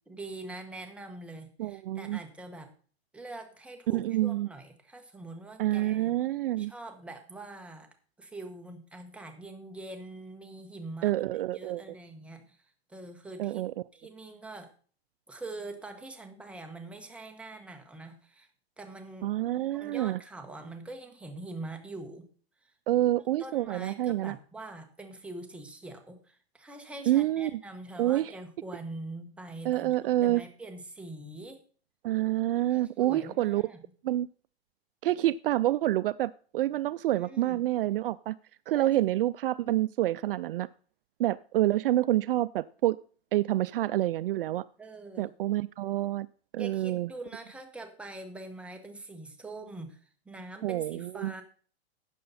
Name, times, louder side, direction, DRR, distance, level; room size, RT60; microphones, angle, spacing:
voice 1, 0.1-2.7 3.1-6.1 6.6-7.9 8.2-11.1 11.5-12.6 12.9-13.6 13.9-14.7 15.3-18.5 18.8-19.3 19.7-22.2 22.6-22.7 23.4-31.6 32.7-33.8 37.1-37.6 38.7-38.9 44.8-45.3 46.6-51.4, right 2 dB, 5° right, 4 dB, 1.2 m, -44 dB
voice 2, 1.6-2.2 3.9-4.5 5.6-6.7 11.0-11.8 13.4-13.7 19.2-20.2 22.9-24.3 27.1-27.6 28.0-28.3 29.6-30.4 32.0-33.6 34.0-34.3 35.0-38.4 38.7-40.7 41.2-43.0 43.3-44.6 45.2-46.3 46.5-47.1 50.6-51.3, right 14 dB, 55° right, 17 dB, 0.4 m, -27 dB
12.5 x 8.6 x 4.1 m, 0.43 s
hypercardioid pair, 150°, 33 cm